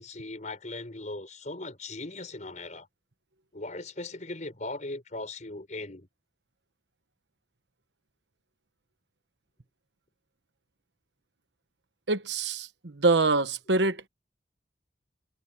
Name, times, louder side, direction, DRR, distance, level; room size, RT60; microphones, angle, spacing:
voice 1, 0.0-2.9 3.5-6.1, left 2 dB, 45° left, 4.8 m, -39 dB
voice 2, 12.1-14.1, right 3 dB, 90° right, 1.2 m, -25 dB
head